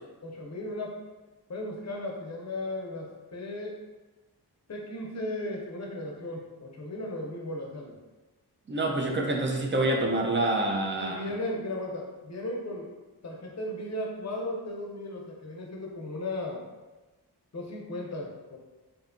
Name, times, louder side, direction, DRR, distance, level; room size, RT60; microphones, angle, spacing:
voice 1, 0.2-1.0 1.5-3.8 4.7-8.0 9.0-9.5 11.0-12.9 13.2-16.6 17.5-18.6, left 1 dB, 40° left, -1 dB, 0.6 m, -36 dB
voice 2, 8.7-11.2, right 2 dB, 30° right, 0 dB, 0.4 m, -27 dB
2.7 x 2.2 x 2.5 m, 1.2 s
wide cardioid pair, 70°, 41 cm